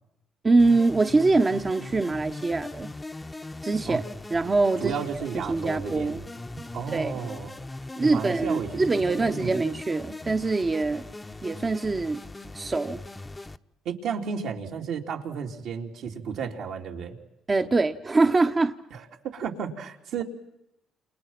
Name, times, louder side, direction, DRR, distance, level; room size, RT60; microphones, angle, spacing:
voice 1, 0.4-2.9 3.6-4.0 4.3-4.9 5.5-6.2 6.6-6.7 6.9-7.1 8.0-11.1 11.4-12.2 12.5-13.0 17.5-18.7, right 3 dB, 25° right, 7 dB, 1.1 m, -23 dB
sound 1, 0.6-13.6, left 2 dB, 15° left, 1.0 m, -40 dB
voice 2, 4.8-6.3 6.7-7.5 8.0-8.8 9.2-9.6 13.9-17.2 18.9-20.2, right 6 dB, 75° right, 1 dB, 3.8 m, -33 dB
29.0 x 28.5 x 6.1 m, 0.84 s
cardioid pair, 95°, 0 cm